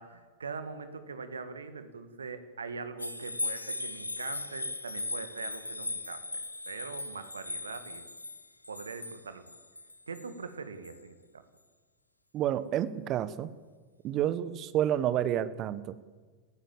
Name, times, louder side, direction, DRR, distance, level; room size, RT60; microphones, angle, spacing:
voice 1, 0.0-6.4 6.7-8.1 8.7-9.6 10.1-11.4, right 4 dB, 70° right, 10 dB, 2.1 m, -42 dB
sound 1, 3.0-10.3 10.8-11.0, left 2 dB, 85° left, 1.1 m, -38 dB
voice 2, 12.3-13.5 14.0-16.0, right 11 dB, 35° right, 15 dB, 1.4 m, -29 dB
29.5 x 16.0 x 7.4 m, 1.4 s
figure-of-eight pair, 90°, 0 cm